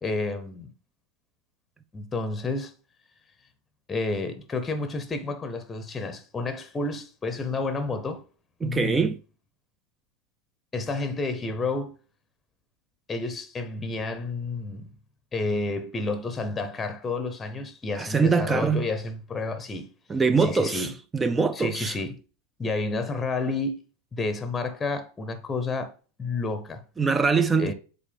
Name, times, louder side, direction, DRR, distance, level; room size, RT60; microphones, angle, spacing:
voice 1, 0.0-0.7 1.9-2.7 3.9-8.2 8.6-9.1 10.7-11.9 13.1-14.9 15.3-19.9 20.4-20.9 21.5-22.2 22.6-23.8 24.1-25.9 26.2-26.8 27.6-27.7, left 3 dB, 15° left, 0.8 m, -30 dB
voice 2, 8.6-9.2 18.0-18.9 20.1-22.0 27.0-27.7, right 4 dB, 15° right, 0.4 m, -23 dB
7.4 x 4.2 x 3.4 m
figure-of-eight pair, 90°, 0 cm